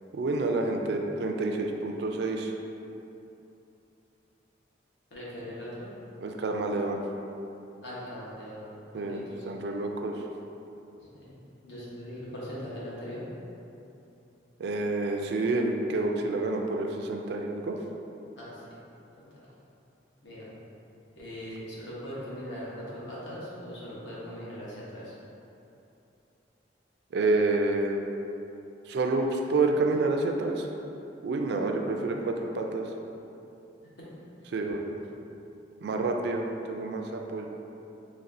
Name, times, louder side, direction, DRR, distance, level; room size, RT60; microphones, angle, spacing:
voice 1, 0.1-2.5 6.2-7.0 8.9-10.2 14.6-17.8 27.1-28.0 28.9-30.7 31.2-32.8 34.5-35.0 35.8-37.5, right 2 dB, 60° right, 2 dB, 0.3 m, -28 dB
voice 2, 5.1-5.9 7.8-8.6 8.9-9.5 11.1-11.3 11.6-13.2 18.4-18.6 19.3-19.4 20.2-20.5 21.1-25.1 34.0-34.1, equal, 70° left, -7 dB, 1.0 m, -40 dB
4.1 x 3.1 x 2.5 m, 2.8 s
head